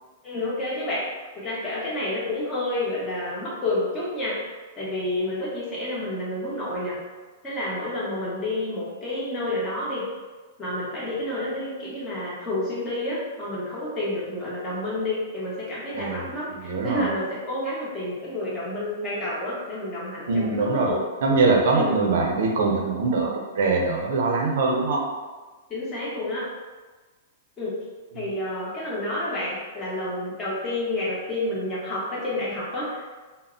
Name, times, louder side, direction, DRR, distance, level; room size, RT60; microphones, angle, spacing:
voice 1, 0.2-1.0 1.3-4.4 4.8-7.0 7.4-10.1 10.6-21.0 21.7-22.0 25.7-26.4 27.6-27.7 28.1-33.0, left 1 dB, 15° left, -7 dB, 0.8 m, -29 dB
voice 2, 15.9-17.1 20.3-20.9 21.2-25.0, right 3 dB, 65° right, 1 dB, 0.5 m, -23 dB
2.1 x 2.0 x 3.7 m, 1.3 s
supercardioid pair, 160°, 0 cm